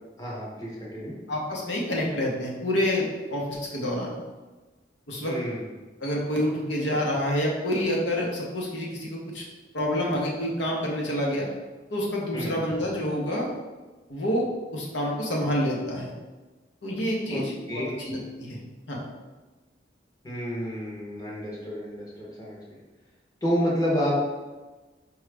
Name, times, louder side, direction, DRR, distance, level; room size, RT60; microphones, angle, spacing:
voice 1, 0.2-1.1 5.2-5.6 12.3-12.5 17.3-17.4 17.7-17.9 20.2-22.8 23.4-24.2, equal, 20° left, -5 dB, 0.8 m, -29 dB
voice 2, 1.3-4.2 5.1-5.3 6.0-9.4 9.7-11.5 11.9-13.5 14.1-16.1 16.8-18.6 18.9-19.0, equal, 75° left, -3 dB, 0.8 m, -28 dB
4.8 x 2.3 x 3.3 m, 1.2 s
head